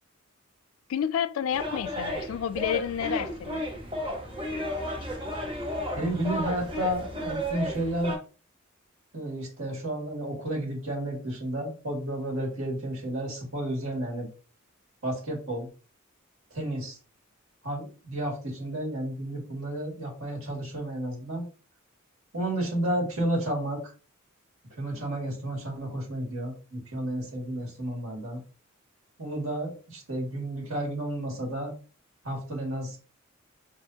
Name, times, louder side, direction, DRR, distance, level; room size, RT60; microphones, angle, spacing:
voice 1, 0.9-3.7, left 8 dB, 75° left, 0.3 m, -30 dB
sound 1, 1.5-8.2, equal, 25° right, 1.1 m, -33 dB
voice 2, 6.0-8.1 9.1-14.3 15.0-15.7 16.5-17.0 17.6-21.5 22.3-23.8 24.8-28.4 29.2-31.7 32.2-33.0, right 1 dB, 80° right, 2.2 m, -31 dB
4.9 x 3.5 x 2.8 m
head